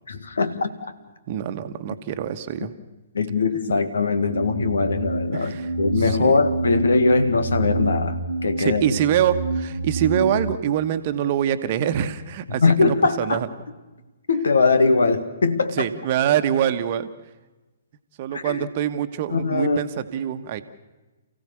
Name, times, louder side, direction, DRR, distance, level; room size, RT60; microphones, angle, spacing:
voice 1, 0.1-0.8 3.1-5.5 5.8-8.8 12.5-13.4 14.3-15.8 18.3-18.6 19.3-19.8, left 4 dB, 70° left, 10 dB, 1.7 m, -21 dB
voice 2, 1.3-2.7 5.3-5.7 6.0-6.4 8.6-13.5 15.8-17.1 18.2-20.6, right 10 dB, 40° right, 9 dB, 1.3 m, -24 dB
sound 1, 4.3-10.5, right 2 dB, 75° right, 1.3 m, -27 dB
29.0 x 16.0 x 7.0 m, 1.2 s
figure-of-eight pair, 125°, 0 cm